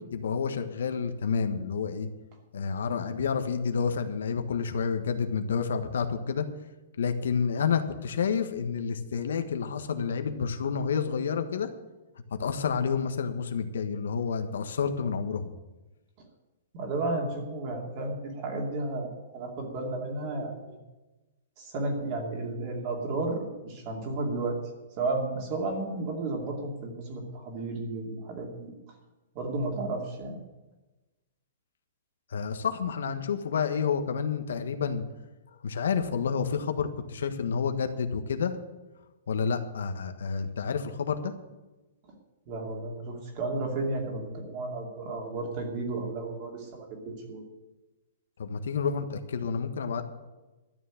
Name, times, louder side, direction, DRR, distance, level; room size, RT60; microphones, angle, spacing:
voice 1, 0.1-2.1 2.5-6.5 7.0-11.7 12.4-15.5 32.3-35.0 35.6-38.5 39.3-41.3 48.4-50.0, left 6 dB, 85° left, 7 dB, 1.5 m, -29 dB
voice 2, 16.7-20.8 21.6-24.6 25.0-28.7 29.3-30.4 42.5-47.4, right 2 dB, 30° right, 1 dB, 2.6 m, -33 dB
12.5 x 7.1 x 9.2 m, 1.1 s
hypercardioid pair, 175°, 0 cm